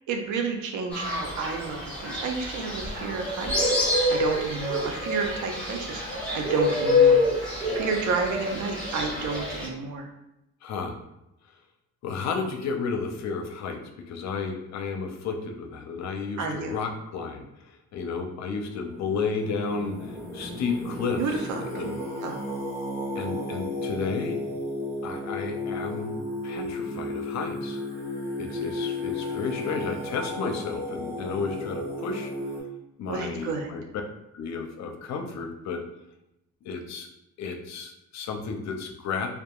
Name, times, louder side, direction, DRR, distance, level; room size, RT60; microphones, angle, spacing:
voice 1, 0.1-7.5 7.7-10.1 16.4-16.7 21.2-21.8 22.2-22.4 33.1-33.7, right 4 dB, 75° right, 3 dB, 0.5 m, -31 dB
Fowl, 0.9-9.7, left 2 dB, 5° left, 1.4 m, -26 dB
voice 2, 10.6-11.0 12.0-13.8 14.1-22.0 23.2-24.4 25.0-26.1 26.4-27.8 28.4-32.3 33.0-33.8 34.3-35.8 36.6-37.1 37.4-39.3, left 5 dB, 65° left, 4 dB, 0.5 m, -32 dB
Singing, 18.8-32.6, left 1 dB, 45° right, 1.2 m, -34 dB
2.6 x 2.4 x 2.3 m, 0.86 s
cardioid pair, 90°, 30 cm